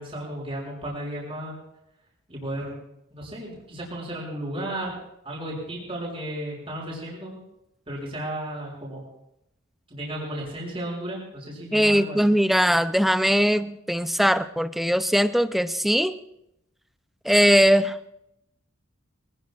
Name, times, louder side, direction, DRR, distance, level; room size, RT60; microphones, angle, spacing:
voice 1, 0.0-1.5 2.3-2.8 3.1-5.0 5.2-7.4 7.9-9.1 9.9-12.3, right 1 dB, 30° right, -4 dB, 6.0 m, -34 dB
voice 2, 11.7-16.2 17.3-17.9, equal, ahead, 11 dB, 0.5 m, -20 dB
24.5 x 20.0 x 2.4 m, 0.83 s
head